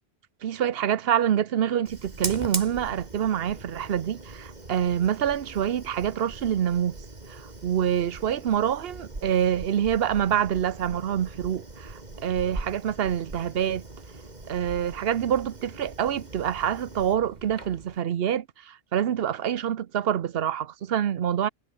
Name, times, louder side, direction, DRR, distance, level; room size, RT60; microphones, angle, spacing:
voice 1, 0.4-7.0 7.3-13.8 14.5-21.5, right 9 dB, 65° right, 0.9 m, -26 dB
Fire, 1.9-18.0, right 2 dB, 40° right, 2.9 m, -40 dB
omnidirectional pair, 1.2 m